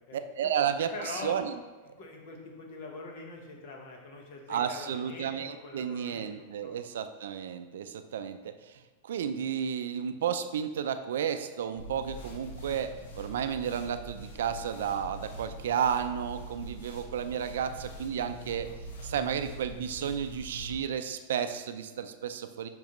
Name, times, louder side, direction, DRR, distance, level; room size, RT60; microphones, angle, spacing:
voice 1, 0.1-1.5 4.5-18.7 19.0-22.7, right 8 dB, 80° right, 10 dB, 0.4 m, -32 dB
voice 2, 0.9-1.4 2.0-6.3 6.6-6.8, left 3 dB, 40° left, 1 dB, 1.1 m, -43 dB
sound 1, 11.8-20.8, right 1 dB, 65° left, 1.2 m, -44 dB
7.1 x 5.4 x 3.1 m, 1.3 s
supercardioid pair, 175°, 0 cm